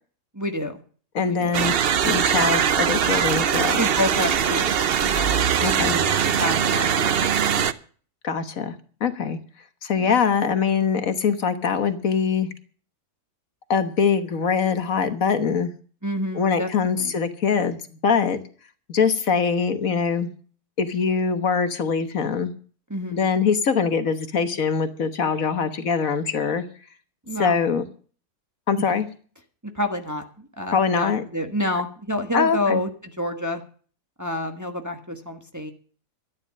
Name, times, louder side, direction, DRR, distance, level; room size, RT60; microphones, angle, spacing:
voice 1, 0.3-0.8 1.3-1.5 3.8-5.5 5.7-7.6 9.9-10.1 16.0-16.7 17.0-17.1 22.9-23.3 27.3-27.6 28.8-28.9 29.7-32.9 33.2-33.6 34.2-35.7, left 1 dB, 10° right, 4 dB, 1.3 m, -28 dB
voice 2, 1.1-1.7 2.0-3.8 5.6-6.0 8.2-8.7 9.0-9.4 9.8-12.5 13.7-15.7 16.3-18.4 18.9-20.3 20.8-22.5 23.1-26.6 27.4-27.8 28.7-29.0 30.7-31.2 32.3-32.8, left 6 dB, 60° left, 9 dB, 1.6 m, -23 dB
sound 1, 1.5-7.7, right 8 dB, 50° right, 0.7 m, -21 dB
13.0 x 9.8 x 6.5 m, 0.42 s
omnidirectional pair, 1.7 m